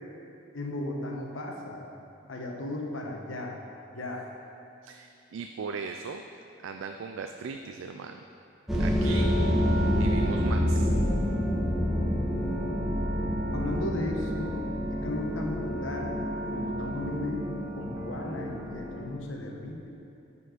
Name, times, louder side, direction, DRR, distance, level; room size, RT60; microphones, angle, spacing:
voice 1, 0.5-1.9 2.3-3.5 3.9-4.2 13.5-17.4 17.7-20.0, left 2 dB, 90° left, 0 dB, 1.0 m, -35 dB
voice 2, 4.8-6.2 6.6-8.2 8.8-9.3 9.9-10.9, right 5 dB, 85° right, 5 dB, 0.3 m, -38 dB
sound 1, 8.7-19.0, equal, ahead, 0.8 m, -28 dB
9.1 x 4.4 x 5.1 m, 2.6 s
head